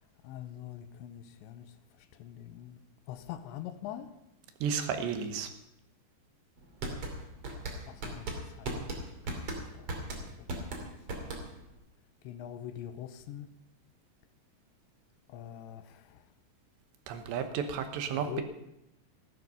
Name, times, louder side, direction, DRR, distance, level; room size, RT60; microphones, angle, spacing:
voice 1, 0.2-1.7 2.1-2.8 3.1-4.1 7.8-9.0 9.6-11.4 12.2-13.5 15.3-16.2 18.1-18.4, left 11 dB, 85° left, 10 dB, 3.1 m, -44 dB
voice 2, 4.6-5.5 17.1-18.4, right 7 dB, 75° right, 7 dB, 3.3 m, -32 dB
sound 1, 6.6-11.7, right 2 dB, 40° right, 2.8 m, -37 dB
16.0 x 12.0 x 5.6 m, 0.84 s
omnidirectional pair, 5.1 m